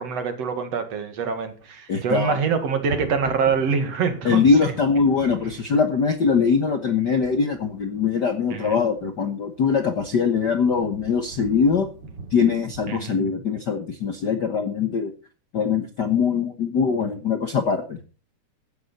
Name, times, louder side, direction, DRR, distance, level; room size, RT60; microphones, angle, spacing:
voice 1, 0.0-4.7 8.5-8.8 12.9-13.2, right 6 dB, 55° right, 8 dB, 2.8 m, -25 dB
Thunder, 1.3-1.7 2.0-12.8, right 3 dB, 35° right, 2.7 m, -42 dB
voice 2, 1.9-2.4 4.2-11.9 12.3-15.1 15.5-18.0, left 5 dB, 50° left, 7 dB, 1.2 m, -22 dB
16.0 x 11.5 x 4.2 m, 0.35 s
omnidirectional pair, 3.5 m